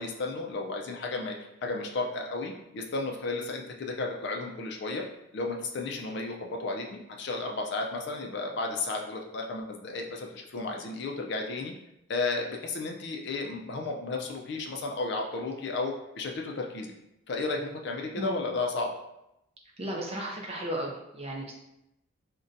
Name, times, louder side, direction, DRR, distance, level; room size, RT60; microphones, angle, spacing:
voice 1, 0.0-1.4 1.6-5.0 5.3-11.7 12.1-16.9 17.3-18.9, left 3 dB, 50° left, 2 dB, 0.4 m, -33 dB
voice 2, 19.8-21.5, right 1 dB, 30° right, -1 dB, 0.4 m, -35 dB
2.5 x 2.2 x 3.8 m, 0.86 s
head